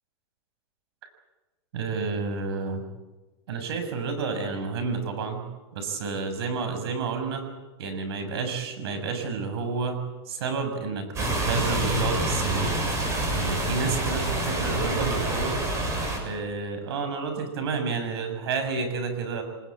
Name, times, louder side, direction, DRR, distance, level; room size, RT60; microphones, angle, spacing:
voice 1, 1.7-2.8 3.5-5.4 5.7-7.4 7.8-12.7 13.3-15.6 16.2-19.4, right 4 dB, 70° right, 7 dB, 6.9 m, -30 dB
sound 1, 11.1-16.2, right 1 dB, 20° right, 6.6 m, -27 dB
25.0 x 20.5 x 8.7 m, 1.1 s
supercardioid pair, 155°, 14 cm